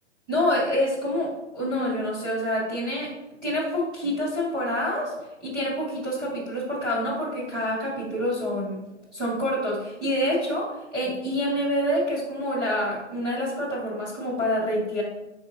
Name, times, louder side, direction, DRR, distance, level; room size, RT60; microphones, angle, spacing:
voice 1, 0.3-3.1 3.4-5.1 5.4-8.8 9.1-15.0, equal, 5° right, -11 dB, 0.3 m, -27 dB
5.0 x 3.7 x 2.5 m, 1.0 s
hypercardioid pair, 135°, 35 cm